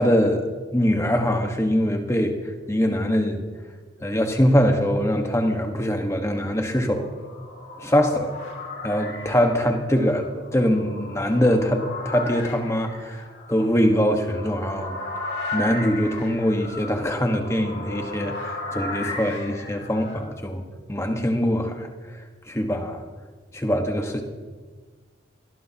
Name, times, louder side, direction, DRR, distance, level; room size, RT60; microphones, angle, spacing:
voice 1, 0.0-2.4 2.7-3.4 4.0-7.1 7.8-8.3 8.8-13.2 13.5-15.0 15.5-20.6 20.9-21.9 22.5-23.0 23.5-24.2, equal, 15° left, 4 dB, 1.3 m, -23 dB
sound 1, 6.8-20.2, left 2 dB, 60° left, 2.9 m, -36 dB
22.0 x 18.0 x 2.9 m, 1.4 s
head